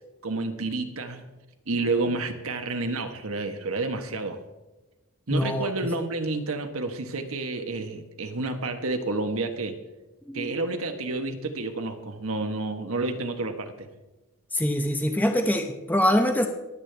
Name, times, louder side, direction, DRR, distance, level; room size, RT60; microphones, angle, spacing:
voice 1, 0.2-1.2 1.7-4.4 5.3-9.8 10.3-13.9, right 2 dB, 75° right, 6 dB, 1.3 m, -30 dB
voice 2, 5.3-5.7 10.3-10.5 14.5-16.5, left 1 dB, 10° left, 4 dB, 0.7 m, -24 dB
25.0 x 8.3 x 3.4 m, 1.1 s
head